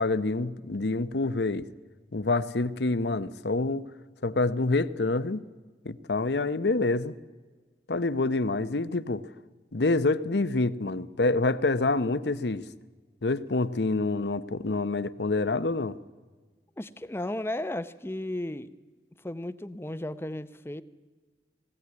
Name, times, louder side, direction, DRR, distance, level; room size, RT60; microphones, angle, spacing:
voice 1, 0.0-1.6 2.1-3.8 4.2-5.4 5.8-7.2 7.9-9.2 9.7-12.7 13.2-16.0, left 3 dB, 70° left, 15 dB, 0.8 m, -27 dB
voice 2, 16.8-18.7 19.2-20.8, left 1 dB, 15° left, 13 dB, 0.7 m, -34 dB
19.5 x 16.5 x 9.6 m, 1.4 s
head